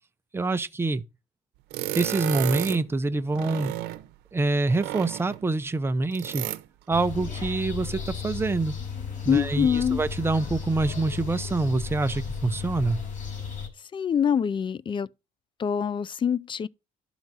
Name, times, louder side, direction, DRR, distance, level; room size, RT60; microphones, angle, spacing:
voice 1, 0.3-1.0 1.9-3.7 4.3-6.5 6.9-8.7 9.2-13.0, right 3 dB, 15° right, 0.7 m, -26 dB
sound 1, 1.7-2.9 3.3-4.1 4.7-5.5 6.1-6.6, right 15 dB, 85° right, 0.8 m, -32 dB
sound 2, 6.9-13.7, left 6 dB, 50° left, 5.8 m, -34 dB
voice 2, 9.3-10.0 13.9-15.1 15.6-16.7, left 7 dB, 30° left, 0.4 m, -25 dB
12.0 x 4.0 x 6.1 m
cardioid pair, 110°, 17 cm